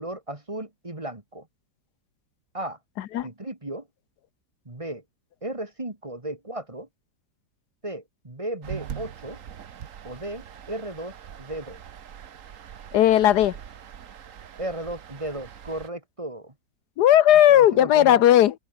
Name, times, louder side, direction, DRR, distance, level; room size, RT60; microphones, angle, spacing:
voice 1, 0.0-1.5 2.5-2.8 3.2-3.9 4.7-5.0 5.4-6.9 7.8-9.4 10.0-11.8 14.6-16.5 17.5-18.2, right 1 dB, 20° right, 2.2 m, -35 dB
sound 1, 8.6-15.9, right 8 dB, 55° right, 1.3 m, -42 dB
voice 2, 12.9-13.6 17.0-18.5, left 11 dB, 80° left, 1.3 m, -16 dB
open air
omnidirectional pair, 1.8 m